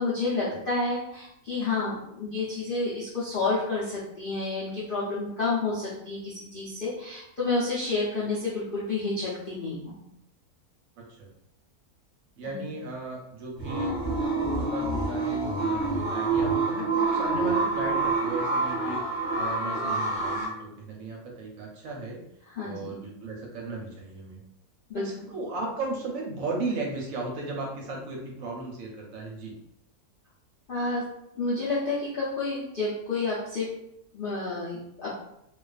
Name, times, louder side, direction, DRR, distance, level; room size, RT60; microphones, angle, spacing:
voice 1, 0.0-10.0 12.4-12.6 22.5-23.0 24.9-25.0 30.7-31.0 31.4-33.7 34.1-35.1, left 3 dB, 60° left, -9 dB, 0.5 m, -30 dB
voice 2, 11.0-11.3 12.4-14.0 14.2-19.1 19.4-22.2 22.6-24.4 24.9-29.5, right 3 dB, 70° right, -1 dB, 0.9 m, -36 dB
sound 1, 13.6-20.5, right 3 dB, 20° right, 0.9 m, -27 dB
2.3 x 2.3 x 2.3 m, 0.79 s
omnidirectional pair, 1.6 m